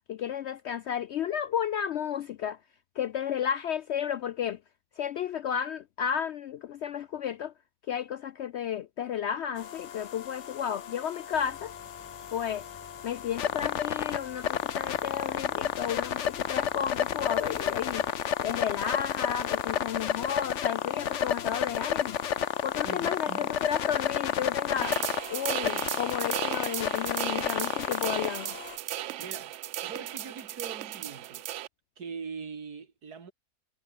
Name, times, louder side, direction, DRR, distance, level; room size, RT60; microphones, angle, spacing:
voice 1, 0.1-2.6 3.0-4.6 5.0-7.5 7.9-11.7 12.3-12.6 13.0-18.1 18.4-22.2 22.6-25.0 25.3-28.5, left 9 dB, 70° left, 0.6 m, -32 dB
sound 1, 9.6-28.8, left 9 dB, 55° left, 1.1 m, -31 dB
sound 2, 11.3-18.1, left 2 dB, 20° left, 1.9 m, -54 dB
voice 2, 22.8-23.6 29.0-31.5 32.0-33.3, right 5 dB, 90° right, 2.7 m, -42 dB
sound 3, 24.8-31.7, right 14 dB, 65° right, 0.7 m, -36 dB
omnidirectional pair, 1.6 m